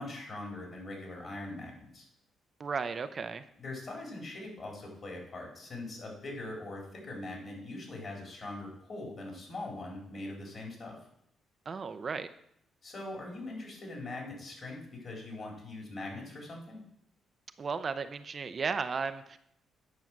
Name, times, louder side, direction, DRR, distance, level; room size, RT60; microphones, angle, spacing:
voice 1, 0.0-2.1 3.6-10.9 12.8-16.8, left 2 dB, 45° left, -1 dB, 4.2 m, -42 dB
voice 2, 2.6-3.4 11.7-12.3 17.6-19.4, right 5 dB, 40° right, 10 dB, 0.6 m, -34 dB
9.3 x 6.3 x 6.0 m, 0.72 s
cardioid pair, 90°, 0 cm